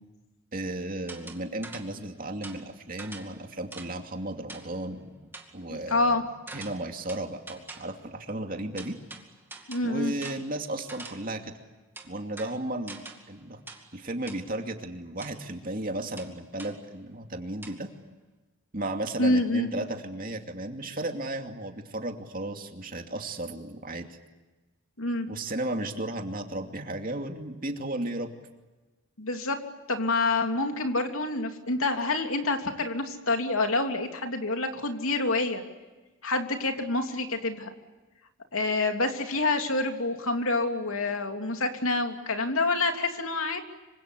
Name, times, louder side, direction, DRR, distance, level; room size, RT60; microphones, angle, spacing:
voice 1, 0.5-5.1 5.5-6.3 6.5-9.0 9.8-11.5 12.0-13.6 13.9-17.9 18.7-24.1 25.3-28.3, right 1 dB, 40° right, 4 dB, 2.6 m, -34 dB
sound 1, 1.1-2.0 2.4-4.0 4.5-4.8 5.3-5.6 6.5-8.0 8.8-11.4 12.0-13.4 13.7-14.0 14.3-14.5 15.2-15.4 16.2-16.8 17.6-17.8, right 3 dB, 10° right, 2.3 m, -45 dB
voice 2, 5.7-6.2 9.7-10.1 19.2-19.7 25.0-25.3 29.2-29.6 29.9-35.6 36.2-37.7 38.5-43.6, left 2 dB, 75° left, 5 dB, 3.1 m, -27 dB
26.0 x 25.5 x 8.4 m, 1.2 s
head